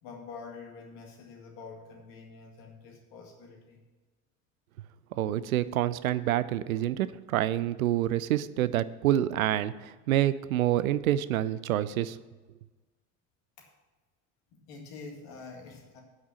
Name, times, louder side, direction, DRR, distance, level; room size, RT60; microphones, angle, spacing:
voice 1, 0.0-3.8 13.6-13.8 14.5-16.0, left 4 dB, 60° left, 1 dB, 2.1 m, -46 dB
voice 2, 5.1-12.2, right 13 dB, 75° right, 16 dB, 0.5 m, -27 dB
9.1 x 6.0 x 7.2 m, 1.3 s
figure-of-eight pair, 55°, 42 cm